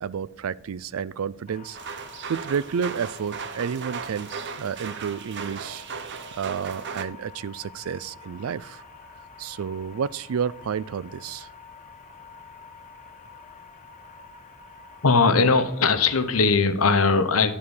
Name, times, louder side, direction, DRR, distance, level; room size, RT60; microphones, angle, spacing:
voice 1, 0.0-1.8 2.3-4.3 4.5-5.8 6.3-8.8 9.4-11.5, right 7 dB, 80° right, 0.4 m, -30 dB
sound 1, 1.5-16.5, left 4 dB, 35° left, 1.1 m, -48 dB
sound 2, 1.7-7.1, right 5 dB, 55° right, 0.8 m, -37 dB
voice 2, 15.0-17.5, left 4 dB, 85° left, 1.0 m, -19 dB
11.5 x 4.7 x 7.0 m
head